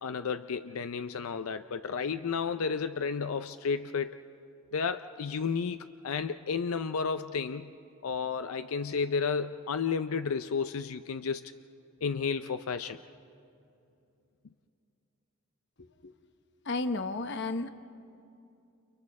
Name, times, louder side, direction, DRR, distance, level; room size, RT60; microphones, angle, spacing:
voice 1, 0.0-4.2 4.7-7.7 8.0-11.4 12.0-13.0, left 5 dB, 90° left, 10 dB, 0.5 m, -32 dB
voice 2, 15.8-16.1 16.6-17.7, left 3 dB, 55° left, 9 dB, 0.9 m, -33 dB
30.0 x 29.5 x 4.2 m, 2.7 s
head